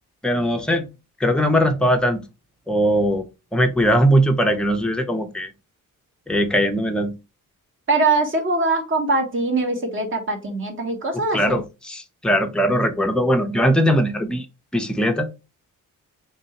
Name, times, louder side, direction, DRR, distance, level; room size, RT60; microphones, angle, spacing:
voice 1, 0.2-0.9 1.2-2.2 2.7-3.3 3.5-5.5 6.3-7.2 11.3-14.5 14.7-15.3, equal, 5° left, 0.5 m, -20 dB
voice 2, 7.9-11.6, right 3 dB, 35° right, 1.3 m, -22 dB
3.8 x 2.6 x 4.2 m
cardioid pair, 140°, 34 cm